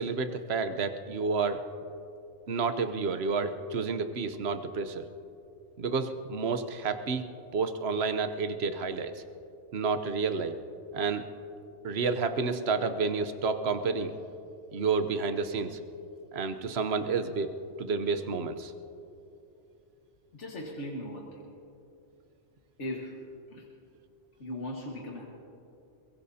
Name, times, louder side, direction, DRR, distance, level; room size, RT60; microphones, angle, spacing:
voice 1, 0.0-1.6 2.5-5.0 5.8-7.2 7.5-9.1 9.7-10.6 10.9-11.2 11.8-14.1 14.7-15.8 16.3-17.5 17.8-18.7, right 4 dB, 65° right, 9 dB, 1.1 m, -30 dB
voice 2, 20.3-21.4 22.8-23.7 24.4-25.2, left 1 dB, 75° left, -2 dB, 1.8 m, -38 dB
22.5 x 22.5 x 2.8 m, 2.8 s
omnidirectional pair, 1.2 m